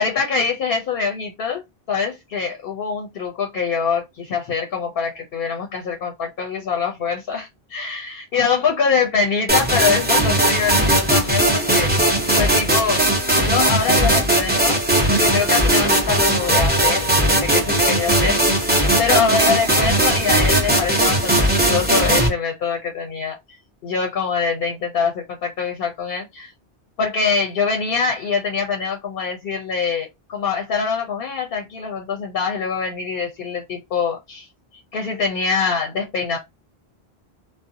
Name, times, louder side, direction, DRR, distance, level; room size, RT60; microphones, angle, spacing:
voice 1, 0.0-1.6 1.9-11.9 12.4-13.0 13.4-14.8 15.1-18.4 19.0-23.6 23.8-26.5 27.0-34.5 34.9-36.4, left 5 dB, 65° left, 0.7 m, -24 dB
sound 1, 9.5-22.3, right 1 dB, 10° right, 0.7 m, -18 dB
2.5 x 2.1 x 2.6 m
omnidirectional pair, 1.1 m